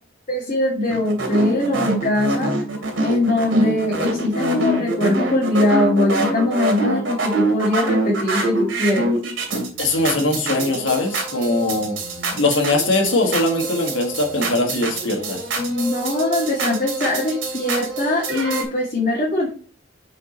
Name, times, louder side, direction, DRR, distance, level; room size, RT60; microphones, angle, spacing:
voice 1, 0.3-2.5 3.0-9.1 15.6-19.5, left 1 dB, 40° left, -4 dB, 1.8 m, -21 dB
sound 1, 0.9-18.6, right 2 dB, 70° right, 2.8 m, -25 dB
voice 2, 9.8-11.9 12.3-15.4, left 2 dB, 70° left, 2 dB, 1.6 m, -21 dB
5.7 x 5.1 x 4.0 m, 0.42 s
head